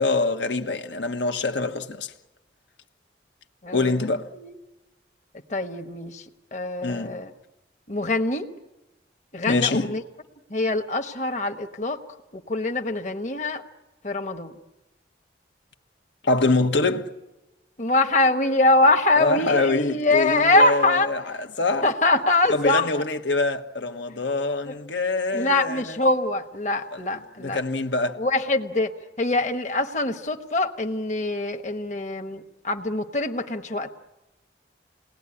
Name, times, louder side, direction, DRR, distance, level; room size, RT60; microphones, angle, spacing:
voice 1, 0.0-2.1 3.7-4.3 6.8-7.2 9.5-9.9 16.2-17.1 19.2-21.9 22.5-26.0 26.9-27.0 27.4-28.2, left 3 dB, 85° left, 1.4 m, -25 dB
voice 2, 3.6-4.0 4.3-4.6 5.5-6.2 6.5-7.3 7.9-8.5 9.3-10.0 10.5-12.0 12.3-13.6 14.0-14.5 17.8-21.1 21.8-22.9 24.7-24.8 25.3-27.6 28.2-28.9 29.2-33.9, left 2 dB, 40° left, 1.2 m, -23 dB
28.5 x 19.5 x 9.9 m
head